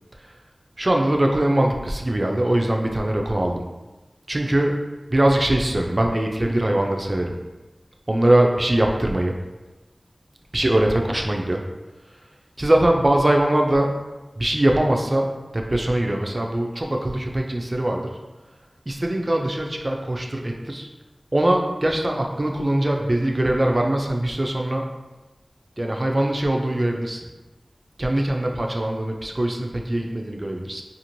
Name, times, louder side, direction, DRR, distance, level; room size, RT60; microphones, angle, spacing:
voice 1, 0.8-3.7 4.3-4.8 5.1-7.3 8.1-9.4 10.5-11.6 12.1-12.2 12.6-14.0 14.4-18.2 18.9-20.9 21.3-24.9 25.8-27.3 28.0-30.8, right 1 dB, 40° right, 1 dB, 0.4 m, -22 dB
3.0 x 2.4 x 2.6 m, 1.1 s
wide cardioid pair, 55°, 0 cm